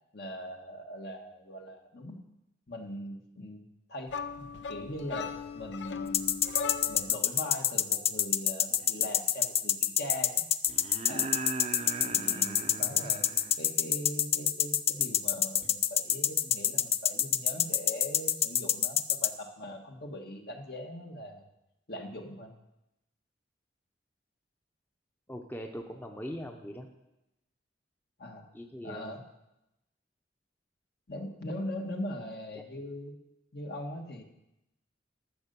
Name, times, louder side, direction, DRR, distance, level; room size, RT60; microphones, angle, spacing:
voice 1, 0.1-2.2 2.7-3.6 3.9-6.4 6.8-10.5 11.1-11.3 12.0-13.3 13.6-21.4 21.9-22.6 28.2-28.5 28.8-29.2 31.1-33.1 33.5-34.2, left 1 dB, 60° left, 3 dB, 1.4 m, -41 dB
sound 1, 4.1-7.2, left 5 dB, 85° left, 0.7 m, -38 dB
sound 2, 6.1-19.3, left 10 dB, 35° left, 0.4 m, -26 dB
sound 3, 8.8-8.9 10.7-13.6 15.6-15.7, right 3 dB, 35° right, 0.6 m, -39 dB
voice 2, 25.3-26.9 28.5-29.2, equal, 10° left, 3 dB, 0.8 m, -41 dB
13.0 x 6.6 x 6.8 m, 0.90 s
head